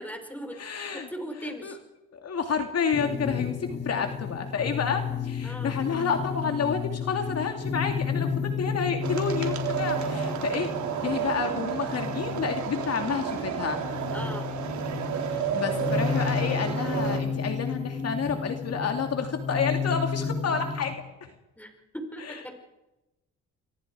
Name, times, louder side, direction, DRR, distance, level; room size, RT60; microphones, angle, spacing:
voice 1, 0.0-0.6 0.9-1.8 5.4-5.8 12.9-13.1 14.1-14.5 21.6-22.6, equal, 5° left, 4 dB, 5.3 m, -39 dB
voice 2, 0.6-1.1 1.4-1.8 2.1-10.7 11.0-13.8 15.3-21.3 22.2-22.4, left 6 dB, 55° left, 5 dB, 2.6 m, -30 dB
sound 1, 2.9-20.9, left 5 dB, 35° left, 5.7 m, -32 dB
sound 2, 9.0-17.2, right 8 dB, 70° right, 3.8 m, -31 dB
29.0 x 23.0 x 4.9 m, 0.97 s
cardioid pair, 90°, 30 cm